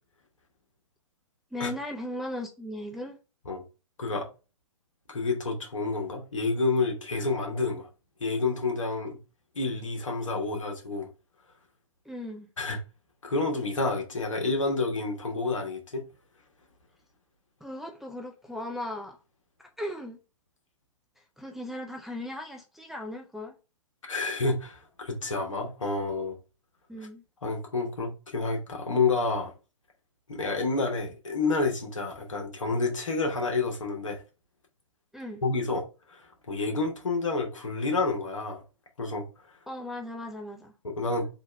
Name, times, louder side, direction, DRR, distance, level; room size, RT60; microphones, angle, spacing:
voice 1, 1.5-3.2 12.1-12.5 17.6-19.2 19.8-20.2 21.2-23.5 26.9-27.2 35.1-35.4 39.7-40.7, left 1 dB, ahead, 0.3 m, -37 dB
voice 2, 5.1-7.9 8.2-9.2 9.5-11.1 12.6-12.8 13.2-16.0 24.0-26.4 27.4-29.5 30.3-34.2 35.4-38.6 39.0-39.2 40.8-41.3, left 3 dB, 70° left, 1.4 m, -29 dB
3.5 x 3.1 x 4.5 m
figure-of-eight pair, 115°, 17 cm